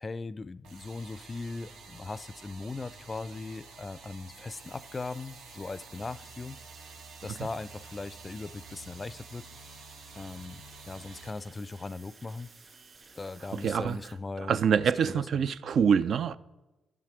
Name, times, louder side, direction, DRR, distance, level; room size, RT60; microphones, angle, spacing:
voice 1, 0.0-6.6 7.2-9.5 10.1-12.5 13.1-15.4, left 3 dB, 30° left, 0.3 m, -39 dB
sound 1, 0.6-11.3, right 4 dB, 85° right, 1.3 m, -50 dB
sound 2, 4.5-14.1, right 4 dB, 45° right, 2.3 m, -55 dB
voice 2, 13.6-14.0 14.4-16.3, right 7 dB, 65° right, 0.3 m, -25 dB
11.0 x 7.5 x 4.9 m
supercardioid pair, 60°, 0 cm